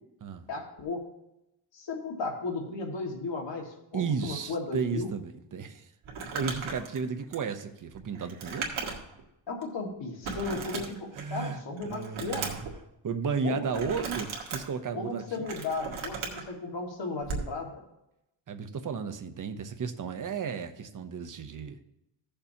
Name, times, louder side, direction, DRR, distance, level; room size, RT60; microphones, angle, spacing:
voice 1, 0.5-1.0 1.7-5.1 9.5-12.5 13.4-13.9 14.9-17.7, left 3 dB, 65° left, 2 dB, 1.9 m, -35 dB
voice 2, 3.9-5.9 6.3-8.7 11.1-12.7 13.0-15.5 18.5-21.8, right 5 dB, 40° right, 8 dB, 0.8 m, -34 dB
Crumpling crinkling, 6.0-9.2 9.6-9.7 10.2-11.4 11.8-12.7 13.7-14.6 15.2-16.4 17.2-17.5, right 5 dB, 85° right, 1.8 m, -36 dB
15.5 x 6.8 x 2.8 m, 0.86 s
cardioid pair, 120°, 47 cm